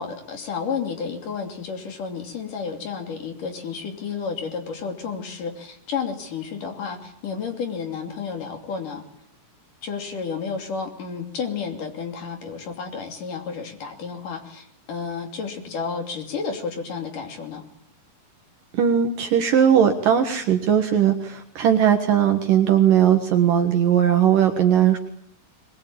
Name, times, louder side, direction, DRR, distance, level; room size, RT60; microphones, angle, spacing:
voice 1, 0.0-9.0 9.8-17.6, left 5 dB, 55° left, 5 dB, 4.2 m, -31 dB
voice 2, 18.7-25.0, right 9 dB, 60° right, 6 dB, 2.9 m, -18 dB
22.5 x 22.0 x 8.7 m, 0.65 s
omnidirectional pair, 4.7 m